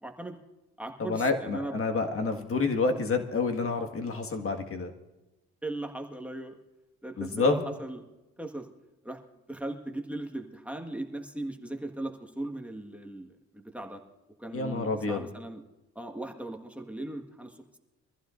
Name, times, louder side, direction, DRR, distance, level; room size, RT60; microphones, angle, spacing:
voice 1, 0.0-0.4 0.8-1.8 2.8-3.0 5.6-6.6 7.0-8.0 8.4-8.7 9.0-9.2 9.5-14.0 14.4-15.6 15.9-17.8, right 2 dB, 5° right, 3 dB, 1.5 m, -38 dB
voice 2, 1.0-4.9 7.2-7.6 14.5-15.2, left 3 dB, 45° left, 4 dB, 1.7 m, -28 dB
24.0 x 15.0 x 2.5 m, 1.0 s
cardioid pair, 90°, 30 cm